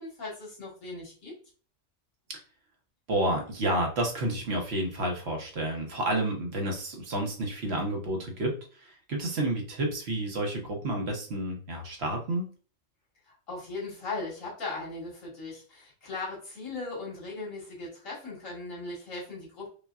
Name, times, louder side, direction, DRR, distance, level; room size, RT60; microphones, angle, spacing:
voice 1, 0.0-1.3 13.3-19.7, left 3 dB, 80° left, -5 dB, 2.0 m, -38 dB
voice 2, 3.1-12.5, right 1 dB, 55° right, 2 dB, 1.0 m, -30 dB
5.2 x 2.2 x 2.3 m, 0.39 s
omnidirectional pair, 1.3 m